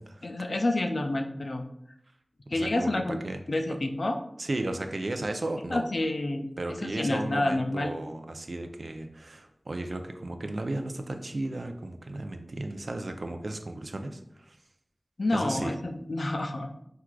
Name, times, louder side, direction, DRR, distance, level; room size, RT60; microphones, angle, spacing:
voice 1, 0.2-1.7 2.5-3.2 3.5-4.2 5.7-7.9 15.2-16.7, left 2 dB, 80° left, 5 dB, 0.3 m, -29 dB
voice 2, 2.5-3.4 4.4-5.8 6.6-14.6 15.3-15.7, right 2 dB, 80° right, 6 dB, 0.3 m, -34 dB
4.5 x 2.4 x 2.2 m, 0.76 s
wide cardioid pair, 45°, 0 cm